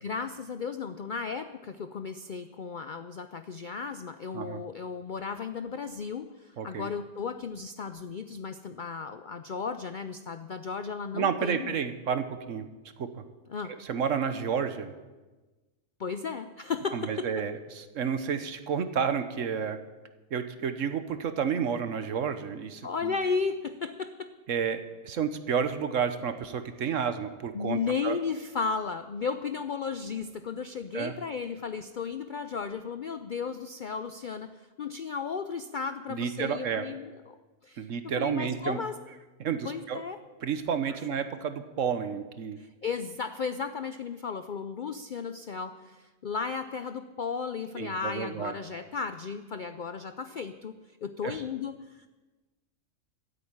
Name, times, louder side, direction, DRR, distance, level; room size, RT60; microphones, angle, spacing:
voice 1, 0.0-11.8 13.5-13.8 16.0-17.3 22.8-24.3 27.5-37.4 37.6-37.9 38.2-39.0 39.6-40.2 42.6-52.1, left 5 dB, 60° left, 10 dB, 0.5 m, -34 dB
voice 2, 6.6-6.9 11.1-12.7 13.0-13.2 13.7-14.9 16.9-19.8 20.3-23.1 24.5-28.2 30.9-31.1 36.1-36.8 37.8-38.8 39.4-40.0 40.4-42.6 47.7-48.5 51.2-51.4, right 7 dB, 65° right, 10 dB, 1.2 m, -31 dB
13.5 x 8.5 x 8.7 m, 1.2 s
omnidirectional pair, 1.5 m